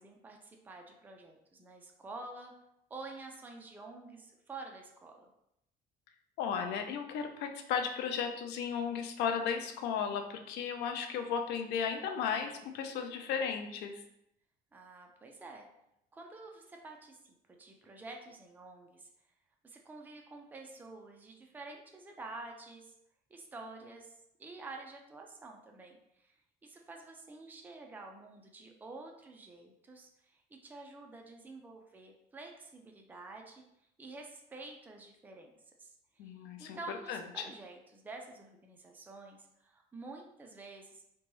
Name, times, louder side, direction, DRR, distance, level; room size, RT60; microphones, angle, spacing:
voice 1, 0.0-2.5 2.9-5.3 14.7-15.7 16.1-19.1 19.6-22.9 23.3-26.4 26.6-33.6 34.0-35.5 35.8-36.3 36.6-41.0, right 3 dB, 10° right, 2 dB, 0.4 m, -49 dB
voice 2, 6.4-14.0 36.2-37.5, left 7 dB, 85° left, 6 dB, 0.4 m, -35 dB
2.9 x 2.2 x 2.9 m, 0.79 s
cardioid pair, 110°, 17 cm